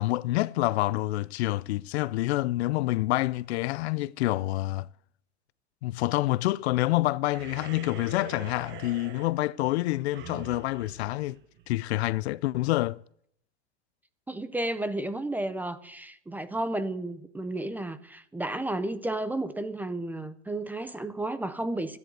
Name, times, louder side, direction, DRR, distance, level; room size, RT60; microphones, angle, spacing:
voice 1, 0.0-4.9 5.8-11.4 11.7-13.0, left 18 dB, 60° left, 0.5 m, -27 dB
sound 1, 7.3-12.0, right 8 dB, 30° right, 1.2 m, -45 dB
voice 2, 14.3-22.0, right 1 dB, 5° right, 0.5 m, -32 dB
14.5 x 10.5 x 8.0 m
supercardioid pair, 140°, 36 cm